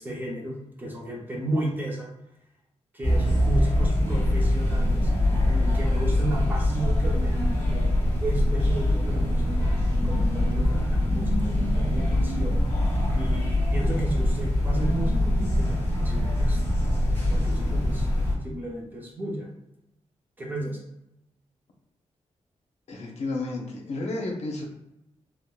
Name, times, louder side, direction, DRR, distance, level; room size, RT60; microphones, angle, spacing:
voice 1, 0.0-2.1 2.9-5.2 5.4-7.8 8.2-9.7 10.0-12.6 13.1-16.6 17.3-18.1 18.4-19.5 20.4-20.8, right 1 dB, 15° right, -2 dB, 0.5 m, -34 dB
sound 1, 3.0-18.3, left 1 dB, 20° left, 0.8 m, -23 dB
voice 2, 22.9-24.7, left 2 dB, 70° left, 0 dB, 0.6 m, -31 dB
3.5 x 2.0 x 2.3 m, 0.84 s
wide cardioid pair, 170°, 12 cm